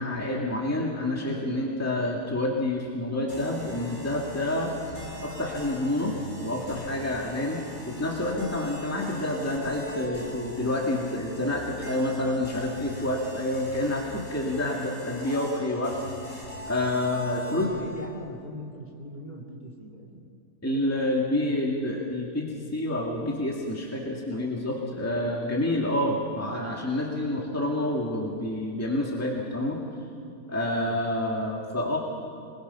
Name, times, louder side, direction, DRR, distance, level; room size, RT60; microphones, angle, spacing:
voice 1, 0.0-4.7 5.2-15.9 16.7-17.7 20.6-29.8 30.5-32.0, left 1 dB, 10° left, -2 dB, 2.1 m, -28 dB
sound 1, 3.3-18.1, left 1 dB, 80° left, 5.1 m, -41 dB
voice 2, 17.3-20.3 25.8-26.0 30.8-31.0, left 1 dB, 30° left, -1 dB, 2.8 m, -42 dB
25.5 x 21.0 x 5.7 m, 2.5 s
omnidirectional pair, 1.6 m